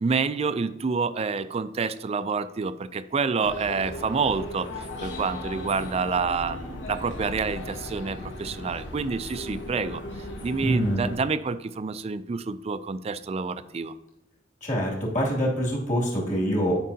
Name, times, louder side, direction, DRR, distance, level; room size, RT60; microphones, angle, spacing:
voice 1, 0.0-4.7 5.0-10.0 10.4-13.9, right 5 dB, 35° right, 13 dB, 0.3 m, -28 dB
sound 1, 3.4-11.2, left 1 dB, 75° left, 1.2 m, -37 dB
voice 2, 10.6-11.0 14.6-16.7, equal, 40° left, -3 dB, 2.4 m, -25 dB
11.0 x 5.3 x 2.8 m, 0.92 s
head